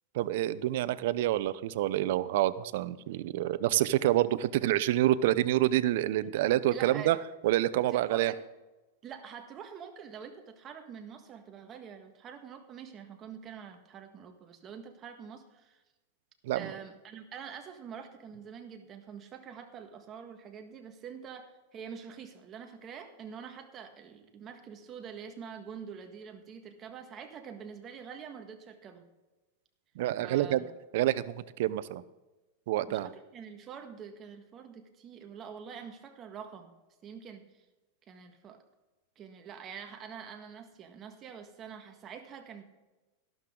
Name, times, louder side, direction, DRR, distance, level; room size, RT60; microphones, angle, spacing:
voice 1, 0.1-7.2 7.4-8.3 16.4-16.7 30.0-30.6 30.9-31.3 31.6-32.0 32.7-33.1, right 14 dB, 65° right, 16 dB, 0.6 m, -27 dB
voice 2, 6.2-7.1 7.9-8.4 9.0-15.8 16.5-29.1 30.2-30.7 32.9-36.7 37.0-37.6 38.1-38.6 39.1-42.6, right 7 dB, 30° right, 5 dB, 1.6 m, -46 dB
13.5 x 12.0 x 3.8 m, 1.1 s
supercardioid pair, 140°, 0 cm